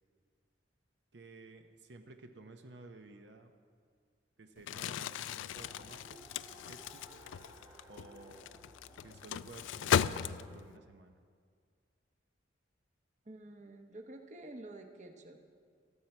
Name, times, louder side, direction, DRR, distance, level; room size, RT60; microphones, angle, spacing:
voice 1, 1.1-3.5 4.4-7.0 7.8-8.5 9.0-11.2, right 3 dB, 65° right, 5 dB, 0.8 m, -54 dB
Crumpling crinkling, 4.6-10.8, left 8 dB, 80° left, 0.3 m, -36 dB
Race car auto racing, 5.5-10.7, equal, 15° right, 1.0 m, -57 dB
voice 2, 13.2-15.4, right 2 dB, 40° right, 5 dB, 0.9 m, -49 dB
15.5 x 13.0 x 4.4 m, 2.1 s
head